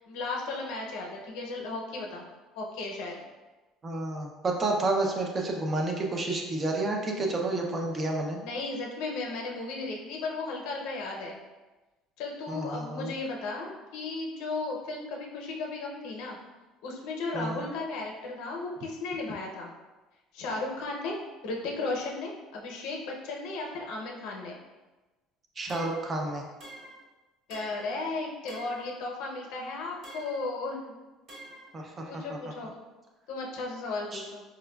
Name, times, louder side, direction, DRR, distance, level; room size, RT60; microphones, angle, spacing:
voice 1, 0.0-2.3 2.5-3.2 8.4-11.4 12.2-16.4 16.8-19.7 20.3-21.2 21.4-24.6 27.5-31.0 32.0-32.7 33.3-34.4, left 3 dB, 70° left, 0 dB, 0.6 m, -35 dB
voice 2, 3.8-8.4 12.5-13.1 17.3-17.7 25.6-26.5 31.7-32.4 34.1-34.3, right 2 dB, 25° right, 1 dB, 0.4 m, -30 dB
sound 1, 25.7-26.1 26.6-27.1 27.5-28.0 28.5-28.9 30.0-30.5 31.3-31.7, right 1 dB, 45° right, 0.8 m, -47 dB
4.7 x 2.2 x 2.2 m, 1.2 s
cardioid pair, 160°, 0 cm